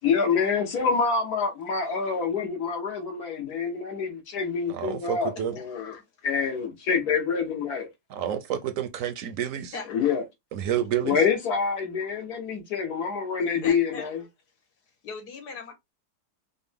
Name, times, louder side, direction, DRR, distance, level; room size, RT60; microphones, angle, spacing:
voice 1, 0.0-5.9 6.2-7.9 9.9-10.2 11.0-14.2, left 6 dB, 75° left, 1.7 m, -26 dB
voice 2, 4.7-5.6 8.1-9.8 10.5-11.2, right 10 dB, 70° right, 0.9 m, -29 dB
voice 3, 5.7-6.0 9.7-10.2 13.6-14.1 15.0-15.7, left 4 dB, 90° left, 1.8 m, -39 dB
5.1 x 2.1 x 3.4 m
omnidirectional pair, 1.6 m